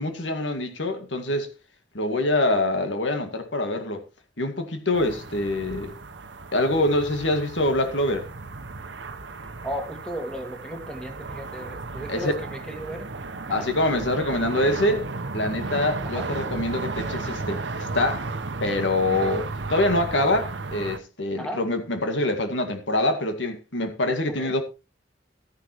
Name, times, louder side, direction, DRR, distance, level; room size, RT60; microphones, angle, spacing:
voice 1, 0.0-1.5 1.9-4.0 4.4-6.0 6.5-8.3 12.1-12.3 13.5-15.1 15.3-18.3 18.6-24.6, left 1 dB, 80° left, 2.0 m, -25 dB
sound 1, 4.9-21.0, right 3 dB, 75° right, 0.9 m, -34 dB
voice 2, 9.6-13.1 13.5-13.7 16.1-16.3 21.4-21.6 24.4-24.5, equal, 5° left, 2.0 m, -35 dB
13.5 x 10.5 x 3.1 m
head